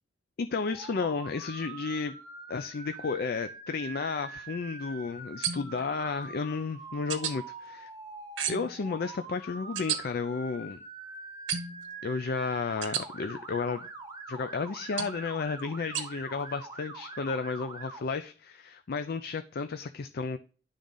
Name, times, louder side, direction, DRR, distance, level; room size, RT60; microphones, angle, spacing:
voice 1, 0.4-2.2 2.5-7.9 8.5-10.8 12.0-13.9 14.3-20.4, left 4 dB, 55° left, 0.4 m, -33 dB
Motor vehicle (road) / Siren, 0.7-18.0, right 3 dB, 20° right, 1.1 m, -44 dB
sound 1, 5.4-5.9 7.1-7.3 8.4-8.8 9.8-10.0 11.5-11.9 12.8-13.0 15.0-15.2 15.9-16.1, right 8 dB, 90° right, 1.3 m, -32 dB
10.5 x 3.8 x 5.4 m
head